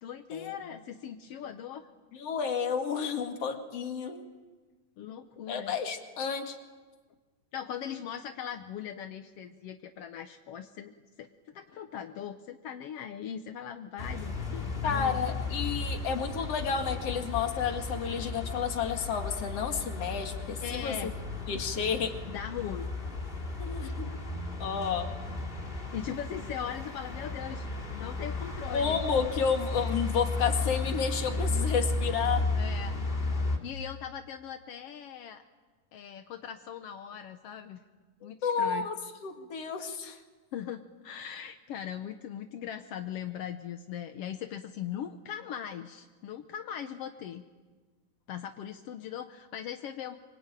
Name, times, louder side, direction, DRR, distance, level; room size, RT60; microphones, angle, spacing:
voice 1, 0.0-1.9 5.0-5.8 7.5-10.9 11.2-11.3 11.5-15.2 20.6-21.2 22.3-22.9 25.7-29.0 32.5-33.0 33.6-35.4 35.9-37.8 38.2-39.1 40.5-47.5 48.3-50.2, left 9 dB, 70° left, 7 dB, 1.4 m, -40 dB
voice 2, 2.1-4.2 5.5-6.6 14.8-21.1 21.5-22.2 23.6-24.1 24.6-25.1 28.7-32.5 38.2-39.0 39.2-40.2, left 6 dB, 50° left, 5 dB, 2.7 m, -31 dB
sound 1, 14.0-33.6, left 3 dB, 15° left, 2.6 m, -34 dB
26.0 x 24.5 x 9.1 m, 1.4 s
omnidirectional pair, 3.9 m